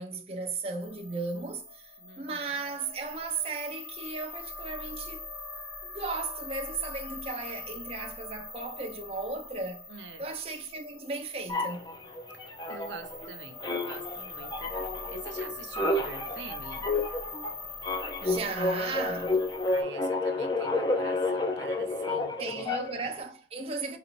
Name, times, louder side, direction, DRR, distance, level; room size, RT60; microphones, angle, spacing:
voice 1, 0.0-5.2 5.8-9.9 10.2-11.9 18.2-19.5 22.4-24.0, right 3 dB, 35° right, 0.5 m, -36 dB
sound 1, 0.8-19.8, left 3 dB, 70° left, 1.2 m, -43 dB
voice 2, 2.0-2.5 9.9-10.2 12.3-16.9 19.7-22.7, right 4 dB, 80° right, 0.5 m, -46 dB
sound 2, 11.5-13.3 13.6-23.1, left 2 dB, 20° left, 0.4 m, -30 dB
3.9 x 2.9 x 3.0 m
head